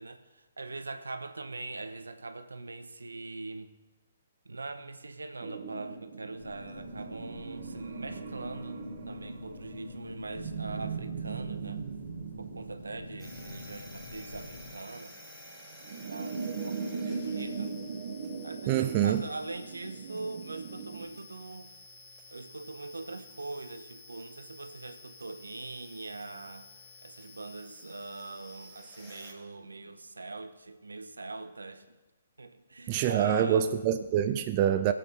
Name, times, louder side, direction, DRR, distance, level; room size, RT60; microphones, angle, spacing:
voice 1, 0.0-3.7 4.4-11.8 12.4-15.2 16.1-17.8 18.4-21.7 22.3-26.7 27.0-31.9 32.4-33.7, right 3 dB, 80° right, 9 dB, 0.8 m, -42 dB
sound 1, 5.4-21.1, right 5 dB, 55° right, 1.1 m, -40 dB
sound 2, 6.4-14.7, left 2 dB, 55° left, 4.4 m, -45 dB
sound 3, 13.2-29.3, left 2 dB, 10° left, 3.6 m, -52 dB
voice 2, 18.7-19.2 32.9-34.9, right 10 dB, 35° right, 8 dB, 0.4 m, -26 dB
21.5 x 8.3 x 2.9 m, 1.1 s
figure-of-eight pair, 125°, 0 cm